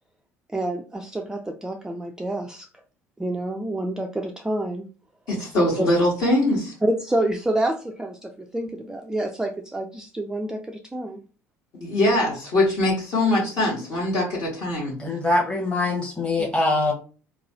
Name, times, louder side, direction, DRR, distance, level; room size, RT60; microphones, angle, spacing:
voice 1, 0.5-2.7 3.2-4.9 5.8-5.9 6.8-11.2 16.4-16.5, right 1 dB, 10° right, 3 dB, 0.3 m, -28 dB
voice 2, 5.3-6.7 11.7-15.0, left 1 dB, 50° left, -5 dB, 1.2 m, -22 dB
voice 3, 15.0-16.9, left 2 dB, 10° left, -2 dB, 0.9 m, -23 dB
3.0 x 2.3 x 2.7 m, 0.35 s
figure-of-eight pair, 65°, 8 cm